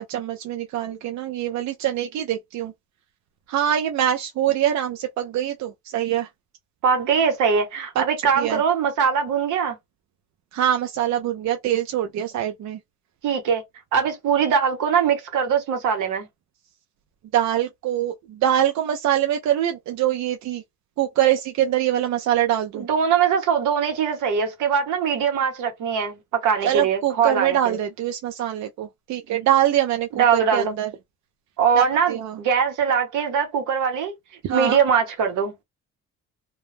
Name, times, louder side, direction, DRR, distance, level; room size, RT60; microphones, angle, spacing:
voice 1, 0.0-2.7 3.5-6.3 8.0-8.1 8.4-8.6 10.5-12.8 17.3-20.6 21.0-22.9 26.6-30.9 31.8-32.4 34.4-34.8, right 11 dB, 70° right, 0.5 m, -24 dB
voice 2, 6.8-9.8 13.2-13.6 13.9-16.3 22.7-27.8 30.1-30.7 31.6-34.1 34.5-35.6, right 6 dB, 85° right, 1.0 m, -22 dB
2.2 x 2.1 x 3.1 m
cardioid pair, 90°, 30 cm